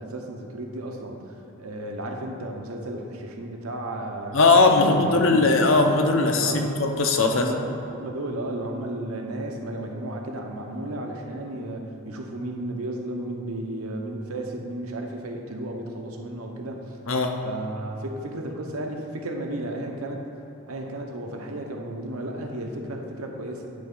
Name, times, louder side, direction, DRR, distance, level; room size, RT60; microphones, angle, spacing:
voice 1, 0.0-4.4 4.7-5.5 6.3-6.7 7.3-16.8 17.4-20.2 20.7-23.7, right 1 dB, 85° right, 2 dB, 0.9 m, -33 dB
voice 2, 4.3-7.4 17.1-17.3, left 3 dB, 65° left, 3 dB, 0.7 m, -19 dB
9.8 x 3.5 x 5.4 m, 2.9 s
head